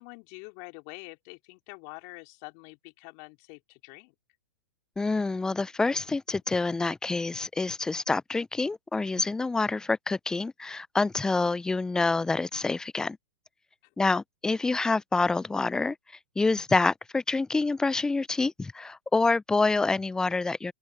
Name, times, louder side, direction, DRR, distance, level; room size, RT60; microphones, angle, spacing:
voice 1, 0.0-4.1, left 34 dB, 45° left, 3.3 m, -46 dB
voice 2, 5.0-13.2 14.0-16.0 16.4-20.7, left 3 dB, 5° left, 0.4 m, -27 dB
open air
hypercardioid pair, 110°, 10 cm